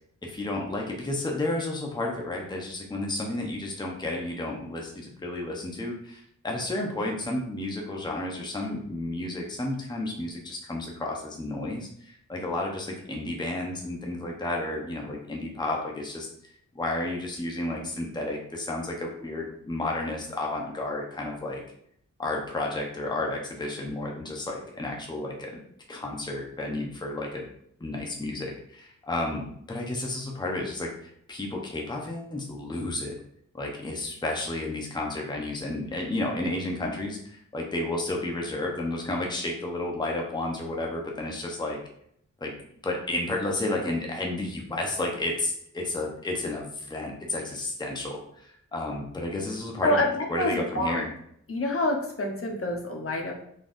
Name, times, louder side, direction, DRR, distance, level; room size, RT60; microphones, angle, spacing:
voice 1, 0.2-16.3 16.7-21.6 22.2-25.6 25.9-27.5 27.8-30.9 31.3-33.1 33.5-41.8 42.4-42.5 42.8-51.1, left 2 dB, 15° left, 0 dB, 0.8 m, -32 dB
voice 2, 49.8-51.1 51.5-53.4, left 1 dB, 40° left, 0 dB, 0.9 m, -27 dB
4.0 x 3.4 x 2.6 m, 0.69 s
cardioid pair, 60°, 33 cm